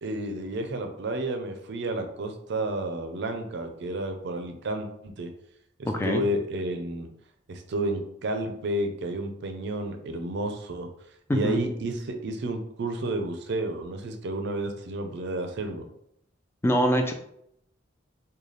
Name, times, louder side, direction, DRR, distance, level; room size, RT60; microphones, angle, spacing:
voice 1, 0.0-5.3 5.8-7.1 7.5-10.9 11.3-15.9, right 1 dB, 55° right, 6 dB, 0.4 m, -31 dB
voice 2, 5.9-6.2 11.3-11.6 16.6-17.1, equal, 10° left, 4 dB, 0.3 m, -23 dB
3.9 x 2.2 x 3.2 m, 0.74 s
head